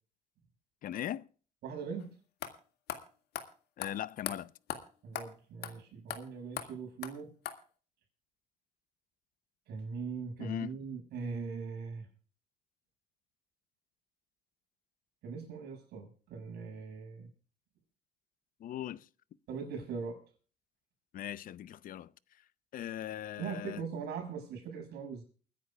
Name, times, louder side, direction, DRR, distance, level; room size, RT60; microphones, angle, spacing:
voice 1, 0.8-1.3 3.8-4.5 10.4-10.8 18.6-19.1 21.1-22.1 22.7-23.8, left 11 dB, 55° left, 0.6 m, -39 dB
voice 2, 1.6-2.1 5.0-7.3 9.7-12.1 15.2-17.3 19.5-20.2 23.4-25.2, right 5 dB, 75° right, 5.9 m, -40 dB
sound 1, 2.0-2.1 2.4-2.5 2.9-3.0 3.3-3.5 3.8-3.9 4.3-4.4 4.7-4.8 5.2-5.3 5.6-5.7 6.1-6.2 6.6-6.7 7.0-7.1 7.5-7.6, left 10 dB, 75° left, 1.9 m, -38 dB
29.5 x 10.0 x 2.3 m
cardioid pair, 110°, 17 cm